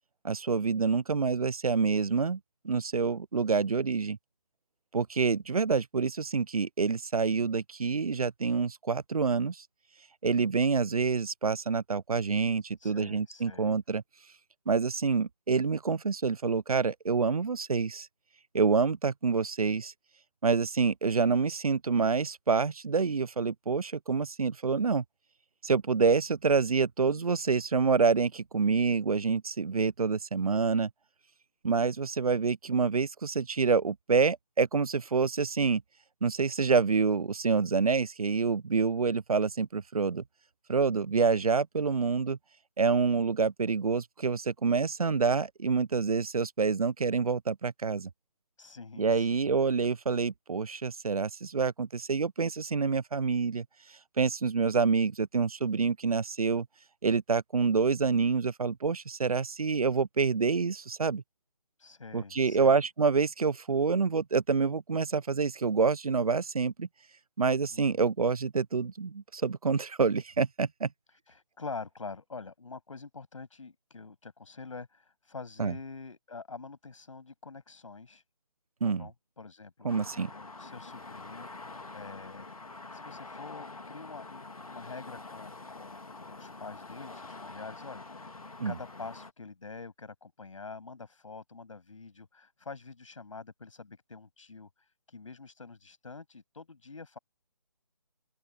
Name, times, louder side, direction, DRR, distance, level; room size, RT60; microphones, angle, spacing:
voice 1, 0.2-2.4 2.6-4.2 4.9-9.6 10.2-14.0 14.7-18.1 18.5-19.9 20.4-25.0 25.6-30.9 31.6-35.8 36.2-40.2 40.7-42.4 42.8-48.1 49.0-53.7 54.2-56.7 57.0-61.2 62.1-66.9 67.4-70.9 75.6-75.8 78.8-79.1 79.8-80.3 88.6-88.7, right 5 dB, 85° right, 0.5 m, -27 dB
voice 2, 12.8-13.7 48.6-49.4 61.8-62.8 67.7-68.1 71.3-78.2 78.8-81.5 81.9-82.5 82.9-97.2, left 4 dB, 65° left, 7.3 m, -46 dB
sound 1, 79.9-89.3, left 3 dB, 80° left, 2.9 m, -46 dB
open air
figure-of-eight pair, 155°, 18 cm